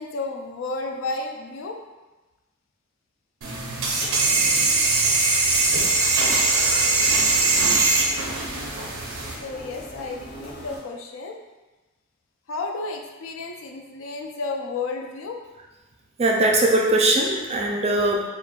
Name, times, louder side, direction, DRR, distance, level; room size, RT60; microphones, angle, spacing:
voice 1, 0.0-1.8 9.4-11.4 12.5-15.4, left 3 dB, 70° left, 2 dB, 0.4 m, -32 dB
sound 1, 3.4-9.3, right 3 dB, 75° right, 0.6 m, -21 dB
sound 2, 5.4-10.8, equal, 50° left, 1.2 m, -41 dB
voice 2, 16.2-18.2, right 2 dB, 30° right, -1 dB, 0.4 m, -20 dB
4.9 x 2.2 x 2.4 m, 1.1 s
head